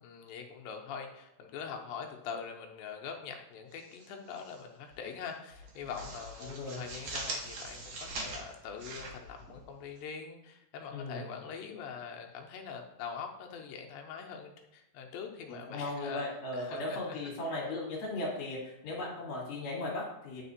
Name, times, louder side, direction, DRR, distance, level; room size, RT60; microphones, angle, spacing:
voice 1, 0.0-16.2 16.5-17.0, left 6 dB, 80° left, 2 dB, 2.4 m, -43 dB
sound 1, 3.7-4.6 4.9-5.1 5.5-10.0, right 2 dB, 65° right, 1.9 m, -42 dB
voice 2, 6.4-6.8 10.9-11.3 15.5-20.4, left 2 dB, 55° left, -4 dB, 2.4 m, -37 dB
9.0 x 4.2 x 2.7 m, 0.86 s
omnidirectional pair, 4.2 m